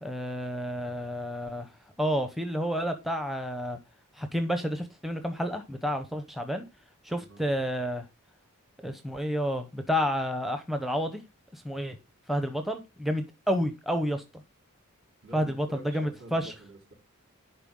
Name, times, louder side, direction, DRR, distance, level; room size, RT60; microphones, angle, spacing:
voice 1, 0.0-1.7 2.0-3.8 4.2-6.6 7.0-8.0 8.8-11.2 11.5-12.0 12.3-14.2 15.3-16.5, equal, ahead, 0.7 m, -30 dB
voice 2, 15.2-16.9, right 2 dB, 65° right, 3.4 m, -47 dB
11.0 x 4.5 x 3.7 m
head